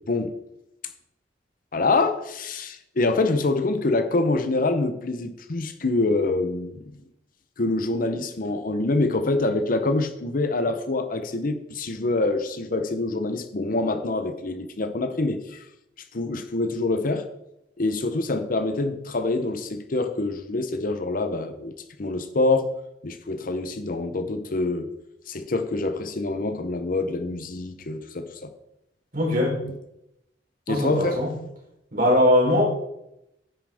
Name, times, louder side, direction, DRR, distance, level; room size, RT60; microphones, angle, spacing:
voice 1, 1.7-6.9 7.6-15.7 16.1-17.3 17.8-21.7 22.0-22.7 23.0-24.9 25.3-28.5 30.7-31.2, left 2 dB, 50° left, 0.8 m, -25 dB
voice 2, 29.1-29.6 30.7-31.3 31.9-32.6, left 1 dB, 55° right, 3.9 m, -20 dB
10.0 x 8.9 x 3.5 m
head